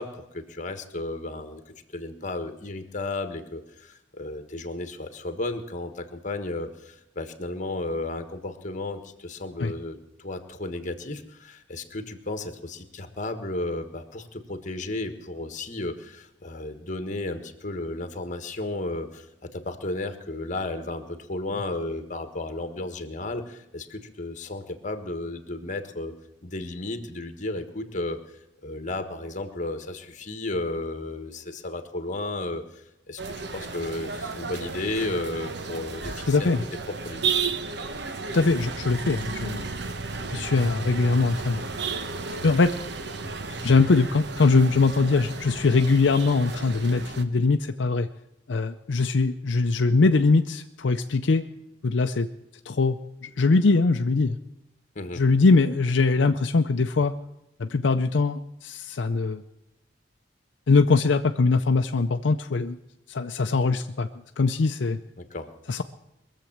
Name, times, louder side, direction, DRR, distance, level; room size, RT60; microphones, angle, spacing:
voice 1, 0.0-26.1 26.4-28.2 28.6-36.5 37.0-37.3 54.9-55.2 65.2-65.5, left 2 dB, 45° left, 8 dB, 1.4 m, -33 dB
sound 1, 33.2-47.2, right 4 dB, 65° right, 1.1 m, -33 dB
voice 2, 36.3-36.6 38.3-39.6 40.3-41.7 42.4-42.7 43.6-48.1 48.5-51.4 51.8-52.3 52.7-54.4 55.1-57.1 57.6-59.4 60.7-62.8 63.1-64.1 64.4-65.0 65.7-65.8, left 3 dB, 75° left, 6 dB, 0.6 m, -22 dB
22.0 x 7.4 x 7.3 m, 0.90 s
head